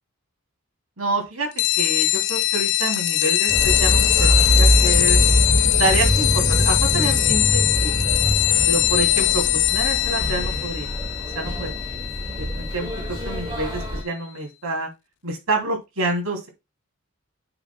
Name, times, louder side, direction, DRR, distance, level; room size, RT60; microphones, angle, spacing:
voice 1, 1.0-1.5 1.8-5.2 5.8-7.9 8.7-10.9 11.3-11.7 12.4-14.9 15.2-16.5, right 2 dB, 80° right, 2 dB, 3.0 m, -27 dB
sound 1, 1.6-13.7, left 16 dB, 55° left, 0.4 m, -21 dB
sound 2, 3.5-14.0, right 1 dB, 20° right, 2.0 m, -23 dB
10.0 x 6.0 x 2.3 m, 0.23 s
head